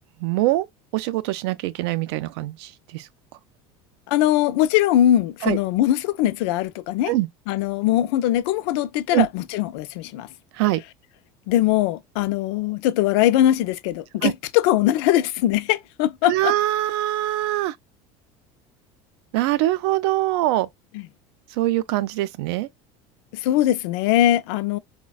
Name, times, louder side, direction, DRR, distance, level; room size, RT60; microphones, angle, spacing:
voice 1, 0.2-0.7 0.9-3.1 5.4-5.6 7.1-7.3 9.1-9.3 10.5-10.8 14.2-14.3 16.2-17.8 19.3-20.7 21.6-22.7, right 16 dB, 90° right, 0.5 m, -23 dB
voice 2, 4.1-7.1 7.5-10.3 11.5-16.5 20.9-21.1 23.3-24.8, left 13 dB, 85° left, 0.4 m, -21 dB
4.1 x 2.2 x 2.3 m
cardioid pair, 170°, 13 cm